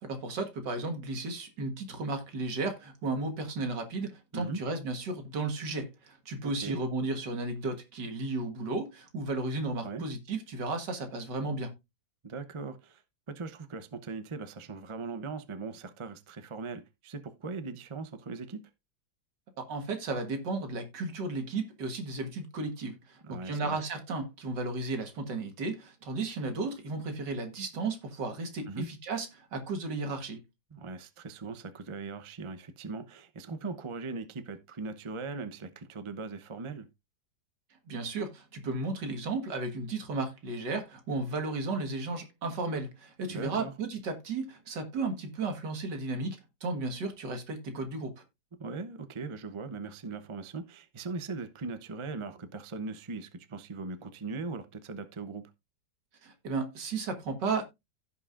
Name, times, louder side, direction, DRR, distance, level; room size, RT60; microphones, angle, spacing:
voice 1, 0.0-11.7 19.6-30.4 37.9-48.2 56.2-57.6, right 3 dB, 75° right, 2.3 m, -34 dB
voice 2, 6.4-6.8 9.8-10.0 12.2-13.0 13.3-18.7 23.2-23.8 28.7-28.9 30.7-36.9 43.3-43.7 48.6-55.5, right 4 dB, 30° right, 0.5 m, -39 dB
16.0 x 5.6 x 2.5 m
omnidirectional pair, 1.9 m